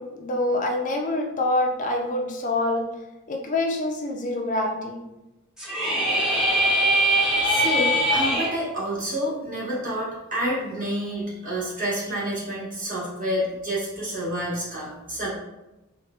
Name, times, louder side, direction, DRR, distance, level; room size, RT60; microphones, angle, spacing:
voice 1, 0.0-2.9 3.3-5.0, left 2 dB, 35° left, 2 dB, 0.4 m, -26 dB
sound 1, 5.6-8.5, equal, 5° right, 0.7 m, -21 dB
voice 2, 7.4-15.3, equal, 40° right, -7 dB, 1.2 m, -29 dB
4.1 x 2.2 x 2.3 m, 0.98 s
head